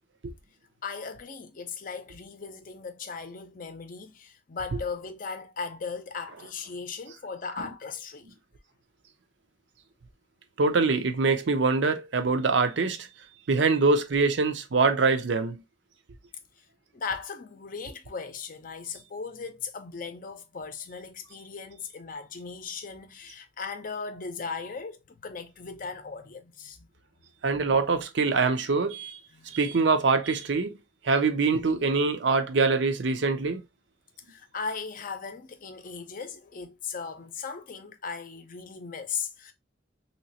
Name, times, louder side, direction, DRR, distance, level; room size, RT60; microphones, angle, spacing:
voice 1, 0.8-8.3 16.6-16.7 16.9-26.9 29.3-29.6 34.3-39.5, left 5 dB, 50° left, 0.6 m, -37 dB
voice 2, 10.6-13.1 13.5-15.6 27.4-29.2 29.5-30.7 31.0-33.6, right 4 dB, 70° right, 0.5 m, -24 dB
3.1 x 2.9 x 2.8 m
head